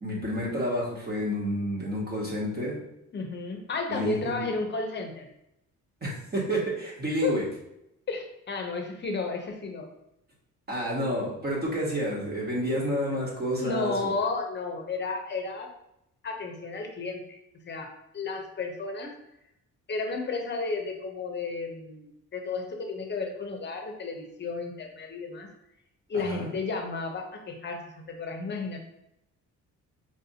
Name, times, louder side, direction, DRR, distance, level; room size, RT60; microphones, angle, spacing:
voice 1, 0.0-2.8 3.9-4.5 6.0-7.4 10.7-14.1 26.1-26.5, equal, 30° right, -3 dB, 1.4 m, -30 dB
voice 2, 3.1-5.3 7.2-7.3 8.1-9.9 13.6-15.7 16.2-17.4 17.7-17.9 18.1-19.1 19.9-25.5 26.1-28.8, left 3 dB, 35° left, 3 dB, 0.7 m, -32 dB
4.9 x 2.6 x 2.8 m, 0.83 s
cardioid pair, 120°, 30 cm